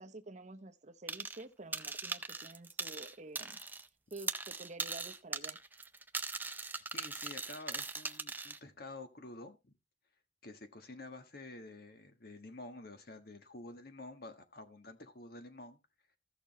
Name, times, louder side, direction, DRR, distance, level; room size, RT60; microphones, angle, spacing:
voice 1, 0.0-3.6 4.1-5.6, right 2 dB, 45° right, 0.8 m, -49 dB
sound 1, 1.1-1.4 1.7-3.9 4.1-8.6, right 3 dB, 10° right, 0.5 m, -40 dB
voice 2, 6.9-9.8 10.4-15.8, left 2 dB, 60° left, 1.5 m, -49 dB
15.0 x 6.5 x 3.1 m
head